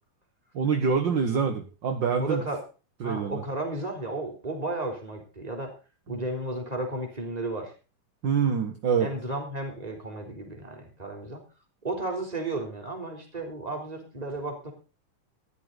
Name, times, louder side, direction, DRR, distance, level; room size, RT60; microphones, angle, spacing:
voice 1, 0.5-2.4 3.0-3.4 6.1-6.2 8.2-9.1, right 6 dB, 45° right, 5 dB, 1.8 m, -25 dB
voice 2, 2.2-2.6 3.0-5.7 6.1-7.7 9.0-11.4 11.8-14.7, right 2 dB, 10° right, 2 dB, 3.4 m, -33 dB
15.0 x 11.5 x 4.0 m, 0.34 s
omnidirectional pair, 3.7 m